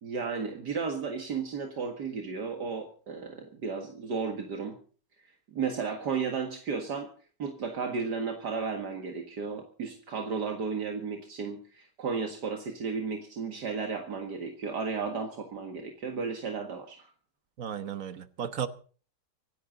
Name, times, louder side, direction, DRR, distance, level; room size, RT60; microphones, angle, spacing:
voice 1, 0.0-4.8 5.5-7.1 7.4-17.1, right 5 dB, 70° right, 2.4 m, -34 dB
voice 2, 17.6-18.7, right 8 dB, 55° right, 1.4 m, -34 dB
25.5 x 11.5 x 3.9 m
omnidirectional pair, 1.8 m